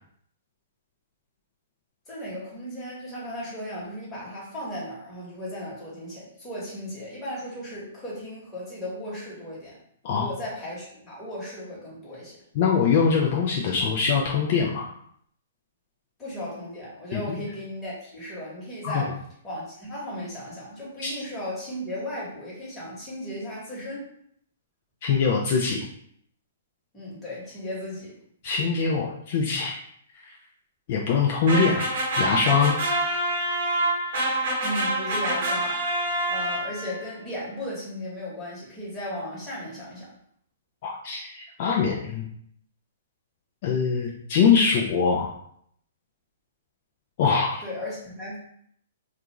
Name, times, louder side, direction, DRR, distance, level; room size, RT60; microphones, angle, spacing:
voice 1, 2.1-9.8 10.1-12.4 16.2-19.2 19.4-24.1 26.9-28.1 34.6-36.0 36.3-40.1 47.6-48.4, left 1 dB, 10° left, -7 dB, 1.2 m, -36 dB
voice 2, 12.5-14.9 17.1-17.4 18.8-19.0 21.0-21.2 25.0-25.9 28.4-29.8 30.2-30.3 30.9-32.8 40.8-42.3 43.6-45.3 47.2-47.6, left 5 dB, 50° left, -1 dB, 0.4 m, -23 dB
sound 1, 31.5-37.0, right 1 dB, 60° right, 1.0 m, -26 dB
2.3 x 2.3 x 3.0 m, 0.67 s
hypercardioid pair, 145°, 0 cm